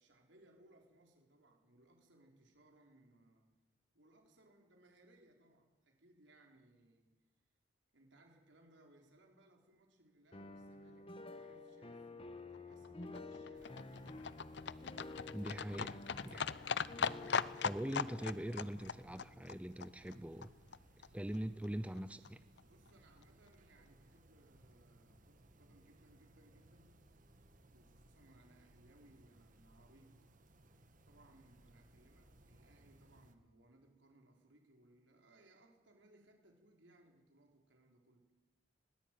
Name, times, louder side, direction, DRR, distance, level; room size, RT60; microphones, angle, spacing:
voice 1, 0.0-3.5 3.9-7.1 7.9-14.3 22.6-27.0 27.7-30.3 31.1-38.3, right 1 dB, 80° right, 2 dB, 4.6 m, -67 dB
sound 1, 10.3-20.3, left 2 dB, 30° left, 1.3 m, -51 dB
Livestock farm animals working animals, 12.5-20.8 21.0-21.1 21.3-21.4 21.6-21.7 22.0-22.1 22.3-22.4 22.6-22.7 22.9-23.0 23.2-23.3, left 6 dB, 65° left, 0.6 m, -40 dB
sound 2, 13.5-33.4, right 1 dB, 45° right, 1.7 m, -65 dB
voice 2, 15.3-16.4 17.6-20.5 21.1-22.4, equal, 5° right, 12 dB, 0.6 m, -42 dB
20.0 x 18.0 x 9.3 m, 1.2 s
head